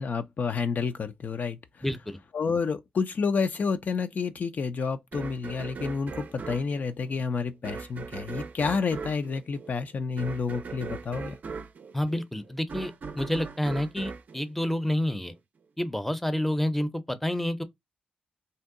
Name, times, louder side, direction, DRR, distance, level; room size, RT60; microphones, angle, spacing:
voice 1, 0.0-1.6 2.3-11.4, left 5 dB, 60° left, 0.4 m, -29 dB
voice 2, 1.8-2.2 11.9-15.3 15.8-17.6, left 1 dB, 5° left, 0.6 m, -29 dB
sound 1, 5.1-15.3, right 5 dB, 60° right, 0.5 m, -40 dB
2.7 x 2.1 x 3.6 m
cardioid pair, 50°, 3 cm